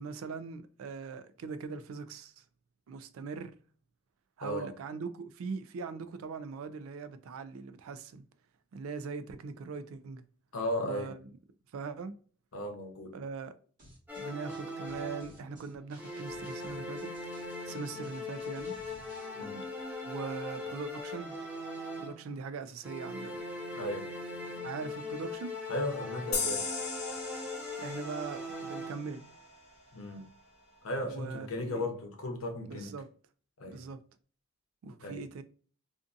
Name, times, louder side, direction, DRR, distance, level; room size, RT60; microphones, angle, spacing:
voice 1, 0.0-2.3 2.9-3.5 4.4-8.2 8.7-10.2 10.8-11.1 11.7-12.1 13.1-13.5 14.2-17.1 17.6-18.9 20.0-21.4 22.0-23.5 24.6-25.5 27.8-29.2 31.1-31.8 32.6-33.1 33.7-34.0 34.8-35.4, right 5 dB, 80° right, 0.3 m, -41 dB
voice 2, 4.4-4.7 10.5-11.1 12.5-13.2 19.3-19.6 23.7-24.1 25.7-26.7 29.9-30.2 30.8-32.9 33.6-33.8 35.0-35.2, left 1 dB, 80° left, 0.7 m, -36 dB
sound 1, 13.8-19.3, right 1 dB, 40° right, 1.1 m, -57 dB
sound 2, 14.1-15.6 16.0-22.4 22.8-29.3, left 2 dB, 10° right, 0.7 m, -40 dB
sound 3, 26.3-29.7, left 5 dB, 35° left, 0.6 m, -38 dB
2.5 x 2.5 x 2.4 m
head